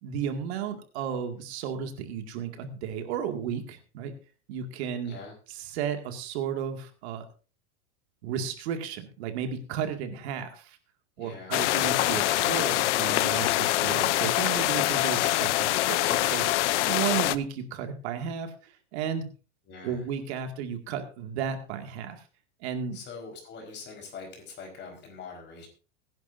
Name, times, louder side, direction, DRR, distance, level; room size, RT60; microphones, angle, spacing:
voice 1, 0.0-4.1 4.5-5.2 5.6-7.3 8.2-10.8 11.2-16.5 16.9-19.3 19.8-22.2 22.6-23.0, right 8 dB, 65° right, 6 dB, 2.2 m, -33 dB
voice 2, 5.0-5.3 11.2-11.6 19.7-20.0 22.9-25.7, left 4 dB, 30° left, 2 dB, 4.6 m, -43 dB
sound 1, 11.5-17.3, left 16 dB, 80° left, 0.7 m, -25 dB
22.0 x 10.5 x 2.7 m, 0.35 s
supercardioid pair, 150°, 35 cm